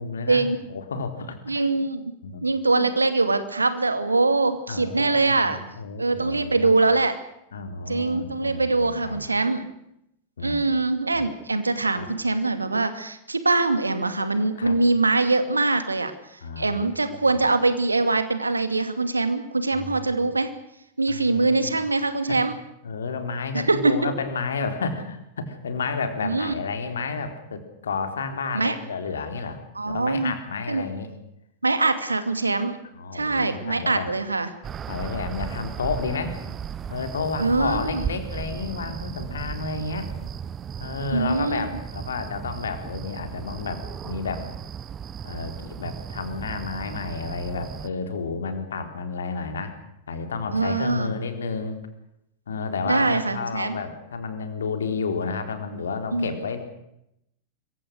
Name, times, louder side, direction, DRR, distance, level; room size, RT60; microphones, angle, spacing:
voice 1, 0.0-1.4 2.2-2.5 2.7-2.9 4.7-6.7 7.5-9.2 10.4-10.6 11.1-11.2 12.0-12.1 14.6-14.8 16.4-17.4 19.7-20.3 21.1-21.8 22.3-22.4 22.8-31.1 32.9-34.1 34.9-36.4 36.9-40.1 40.8-44.5 45.2-49.7 50.1-51.8 52.5-56.6, left 4 dB, 65° left, 7 dB, 4.0 m, -31 dB
voice 2, 1.5-2.1 2.4-5.6 6.0-7.1 7.9-9.7 10.4-20.5 21.0-22.6 23.5-24.0 26.2-26.5 28.5-28.8 29.7-30.3 30.7-30.9 31.6-32.8 33.1-34.5 37.4-38.0 41.1-41.8 50.5-51.1 52.9-53.8 56.1-56.4, right 3 dB, 80° right, 10 dB, 2.5 m, -23 dB
sound 1, 34.6-47.9, right 8 dB, 25° right, 1.0 m, -35 dB
26.0 x 23.5 x 6.6 m, 0.80 s
figure-of-eight pair, 90°, 0 cm